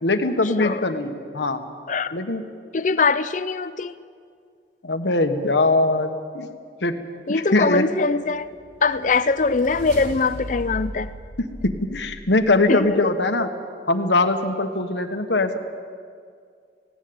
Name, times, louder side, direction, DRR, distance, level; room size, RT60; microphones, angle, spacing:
voice 1, 0.0-1.6 2.1-2.4 4.8-6.5 6.8-6.9 7.3-7.9 11.6-13.5 13.9-15.6, left 2 dB, 80° left, 7 dB, 1.5 m, -21 dB
voice 2, 2.7-3.9 7.3-8.5 8.8-11.1 12.7-13.1, left 4 dB, 45° left, 14 dB, 0.5 m, -22 dB
sound 1, 8.4-12.6, equal, 85° right, 5.5 m, -37 dB
19.0 x 17.5 x 8.8 m, 2.2 s
head